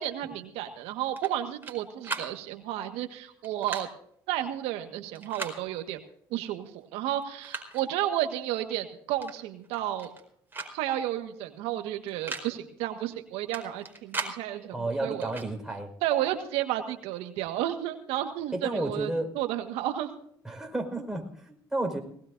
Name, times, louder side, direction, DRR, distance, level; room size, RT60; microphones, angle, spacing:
voice 1, 0.0-3.9 4.3-6.0 6.3-10.1 10.7-15.3 16.0-19.1 19.3-20.2, right 12 dB, 85° right, 6 dB, 1.6 m, -32 dB
sound 1, 1.2-1.8 2.0-2.3 3.4-3.9 5.1-5.6 6.7-6.8 7.2-7.8 9.2-9.4 9.6-10.2 10.5-10.7 11.0-11.1 12.1-12.5 13.5-14.4 15.2-15.5, right 3 dB, 20° right, 4.5 m, -37 dB
voice 2, 14.7-15.9 18.5-19.3 20.4-22.0, right 2 dB, 5° right, 2 dB, 5.1 m, -32 dB
19.5 x 19.0 x 2.6 m, 0.63 s
supercardioid pair, 75°, 10 cm